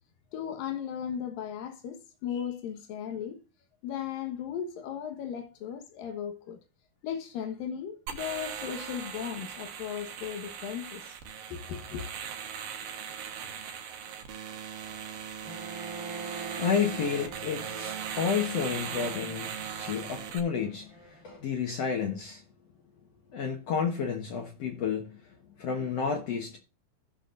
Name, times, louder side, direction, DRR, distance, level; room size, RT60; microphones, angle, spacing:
voice 1, 0.3-3.4 3.8-6.6 7.0-11.2 11.5-12.1, left 8 dB, 90° left, 3.0 m, -36 dB
sound 1, 8.1-20.4, right 8 dB, 85° right, 3.0 m, -39 dB
Bowed string instrument, 15.4-21.4, right 3 dB, 10° left, 1.9 m, -45 dB
voice 2, 16.6-22.4 23.3-26.6, left 6 dB, 60° left, 2.0 m, -31 dB
15.5 x 6.2 x 2.5 m
omnidirectional pair, 3.8 m